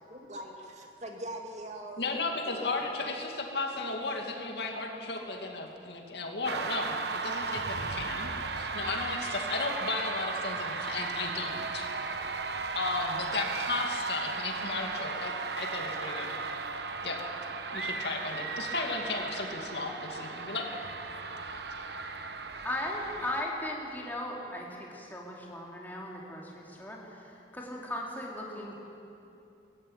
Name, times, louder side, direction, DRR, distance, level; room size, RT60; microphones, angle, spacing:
voice 1, 0.1-3.0, right 1 dB, 40° right, 2 dB, 2.4 m, -43 dB
voice 2, 2.0-11.9 12.7-16.4 17.0-17.2 17.7-20.7, left 3 dB, 70° left, 1 dB, 2.5 m, -35 dB
sound 1, 6.4-23.4, right 4 dB, 70° right, 1.1 m, -36 dB
voice 3, 22.6-28.8, left 1 dB, 10° left, -3 dB, 3.5 m, -37 dB
21.0 x 15.0 x 9.1 m, 2.8 s
head